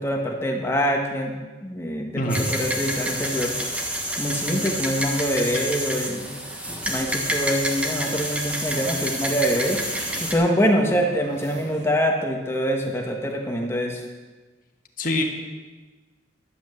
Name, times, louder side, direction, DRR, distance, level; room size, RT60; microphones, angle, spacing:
voice 1, 0.0-3.5 4.2-6.3 6.9-9.8 10.2-14.1, equal, 15° left, 1 dB, 1.5 m, -24 dB
voice 2, 2.2-2.5 15.0-15.2, left 1 dB, 45° left, 2 dB, 1.7 m, -24 dB
sound 1, 2.3-10.3, equal, 5° right, 1.3 m, -28 dB
sound 2, 2.6-11.9, right 1 dB, 60° right, 2.3 m, -44 dB
12.0 x 8.2 x 7.8 m, 1.3 s
head